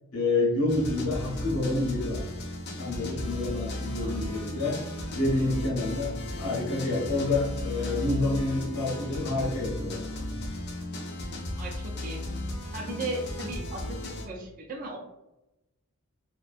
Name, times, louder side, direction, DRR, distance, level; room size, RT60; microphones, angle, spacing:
voice 1, 0.1-2.2 2.8-4.8 5.1-10.0, left 2 dB, 80° left, -4 dB, 0.8 m, -28 dB
sound 1, 0.7-14.3, left 1 dB, 50° left, 0.5 m, -35 dB
voice 2, 11.6-12.2 12.7-15.0, right 2 dB, 40° right, 1 dB, 0.4 m, -37 dB
2.5 x 2.1 x 2.4 m, 0.93 s
head